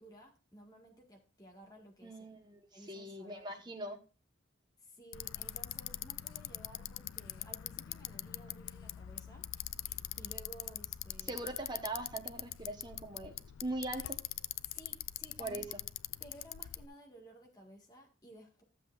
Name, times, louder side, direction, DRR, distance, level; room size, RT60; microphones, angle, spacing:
voice 1, 0.0-2.2 2.7-3.4 4.8-9.4 10.2-11.5 14.6-15.7 16.2-18.6, right 1 dB, 20° left, -1 dB, 1.8 m, -55 dB
voice 2, 2.0-4.0 11.2-13.3 13.6-14.2 15.4-15.7, right 2 dB, 20° right, 4 dB, 1.1 m, -41 dB
Bicycle, 5.1-16.9, left 13 dB, 85° left, 0.4 m, -43 dB
13.0 x 7.5 x 2.5 m, 0.32 s
head